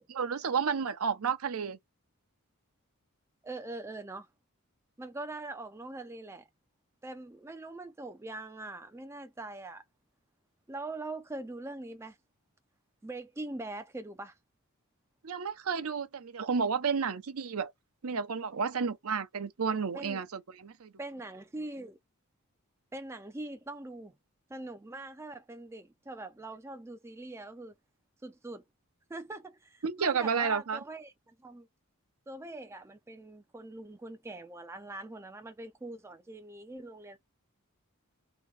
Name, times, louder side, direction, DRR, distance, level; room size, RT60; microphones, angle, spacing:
voice 1, 0.1-1.8 15.2-17.7 18.0-20.9 29.8-30.8, right 6 dB, 75° right, 0.6 m, -31 dB
voice 2, 3.4-4.3 5.0-6.5 7.0-9.8 10.7-12.2 13.0-14.4 19.9-20.2 21.0-22.0 22.9-24.2 24.5-27.7 28.2-28.6 29.1-31.7 32.3-37.2, right 2 dB, 10° right, 0.3 m, -42 dB
2.9 x 2.7 x 3.2 m
head